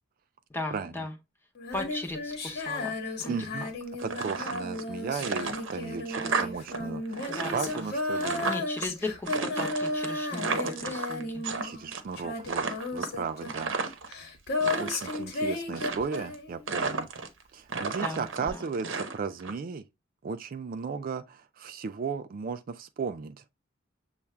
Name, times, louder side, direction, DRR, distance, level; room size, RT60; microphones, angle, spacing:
voice 1, 0.5-1.1 1.7-3.4 3.6-3.7 7.3-7.9 8.4-11.4 18.0-18.7, left 2 dB, 10° left, 0.8 m, -37 dB
Female singing, 1.6-16.9 18.5-18.6, left 2 dB, 55° left, 1.2 m, -34 dB
voice 2, 3.3-3.7 4.0-8.5 11.6-14.0 14.8-17.1 17.5-19.8 20.2-23.4, right 5 dB, 45° right, 0.3 m, -35 dB
sound 1, 4.0-4.9 5.2-6.8 7.0-8.9 9.3-11.6 11.9-12.2 12.5-14.1 14.5-15.2 15.7-16.3 16.7-17.4 17.7-19.5, right 4 dB, 75° right, 0.8 m, -33 dB
7.0 x 2.4 x 3.2 m
head